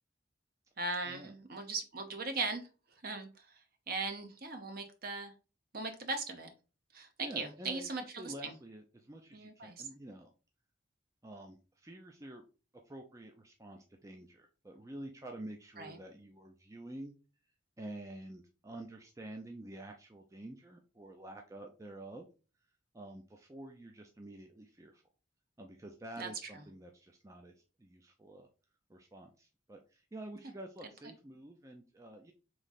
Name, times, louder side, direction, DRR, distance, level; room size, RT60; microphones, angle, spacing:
voice 1, 0.8-2.7 3.0-3.5 3.9-5.3 5.7-6.5 6.9-8.5 9.3-9.8 15.8-16.0 26.2-26.3, right 3 dB, 50° right, 6 dB, 0.8 m, -38 dB
voice 2, 7.2-7.9 8.2-10.3 11.2-12.4 12.9-17.1 17.8-22.3 22.9-25.0 25.6-28.5 28.9-32.3, right 1 dB, 15° right, 3 dB, 0.4 m, -49 dB
3.6 x 3.3 x 4.0 m, 0.34 s
head